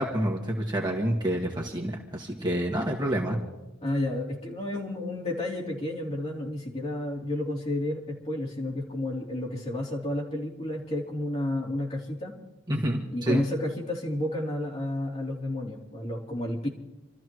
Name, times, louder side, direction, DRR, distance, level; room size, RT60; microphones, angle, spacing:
voice 1, 0.0-3.4 12.7-13.4, right 1 dB, 20° right, -1 dB, 1.7 m, -28 dB
voice 2, 3.8-12.3 13.1-16.7, left 1 dB, 30° left, -4 dB, 3.3 m, -31 dB
28.0 x 13.5 x 3.1 m, 1.0 s
head